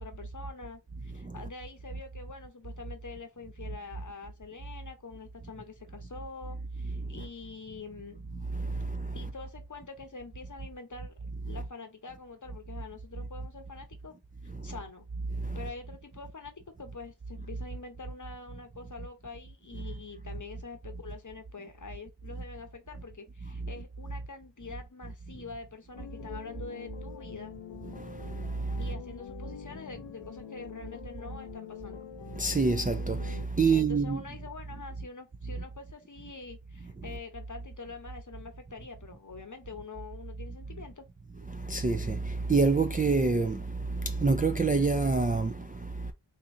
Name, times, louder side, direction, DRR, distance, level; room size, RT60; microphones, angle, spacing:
voice 1, 0.0-8.2 9.1-11.2 11.4-14.1 14.4-15.1 15.5-27.5 28.8-32.1 33.7-41.0, left 4 dB, 40° left, 0.8 m, -45 dB
voice 2, 8.5-9.2 14.6-14.7 15.4-15.6 27.9-28.8 32.3-34.2 41.5-46.1, right 4 dB, 20° right, 0.3 m, -28 dB
sound 1, 25.9-33.5, left 9 dB, 75° left, 0.5 m, -46 dB
3.5 x 2.8 x 2.5 m
wide cardioid pair, 50°, 45 cm